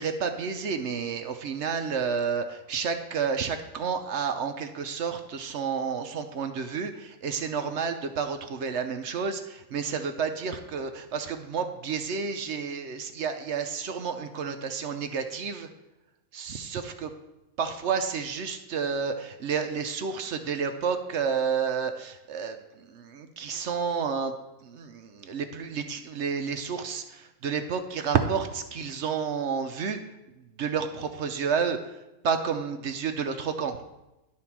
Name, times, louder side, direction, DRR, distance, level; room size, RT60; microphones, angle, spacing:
voice 1, 0.0-15.7 16.3-17.1 17.6-24.3 24.6-30.0 30.6-31.8 32.2-33.8, right 6 dB, 60° right, 7 dB, 0.8 m, -30 dB
11.5 x 4.3 x 5.9 m, 0.96 s
omnidirectional pair, 1.6 m